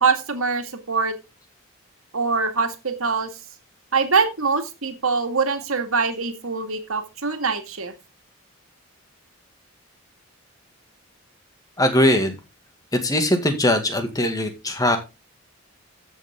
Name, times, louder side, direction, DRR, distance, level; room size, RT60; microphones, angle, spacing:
voice 1, 0.0-1.2 2.1-3.3 3.9-7.9, right 4 dB, 75° right, 6 dB, 2.2 m, -23 dB
voice 2, 11.8-12.3 13.0-15.0, left 1 dB, 15° left, 6 dB, 2.0 m, -20 dB
14.0 x 7.0 x 3.7 m, 0.26 s
head